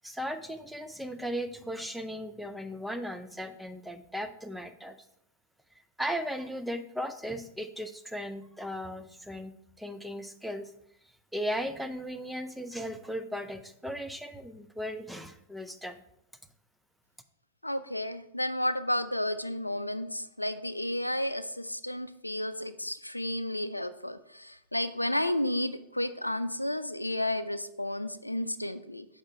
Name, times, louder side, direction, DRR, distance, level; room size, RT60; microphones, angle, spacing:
voice 1, 0.0-5.0 6.0-10.7 11.3-16.0, equal, ahead, 7 dB, 0.5 m, -37 dB
voice 2, 17.6-29.1, left 1 dB, 90° left, 13 dB, 0.3 m, -32 dB
6.4 x 5.0 x 4.4 m, 0.76 s
figure-of-eight pair, 90°, 0 cm